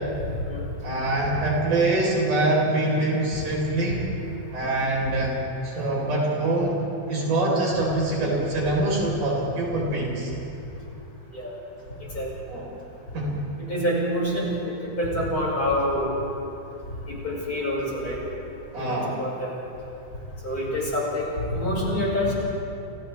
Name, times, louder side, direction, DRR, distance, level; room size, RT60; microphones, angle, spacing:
voice 1, 0.2-0.6 11.3-11.5 12.1-12.3 13.7-16.1 17.1-18.2 18.8-19.5 20.4-22.3, left 1 dB, 25° left, -5 dB, 6.3 m, -27 dB
voice 2, 0.8-4.0 4.5-5.3 5.6-6.8 7.1-10.3 12.5-12.6 13.1-13.4 18.7-19.2, right 2 dB, 85° right, -3 dB, 6.2 m, -24 dB
30.0 x 29.0 x 3.6 m, 2.9 s
omnidirectional pair, 3.5 m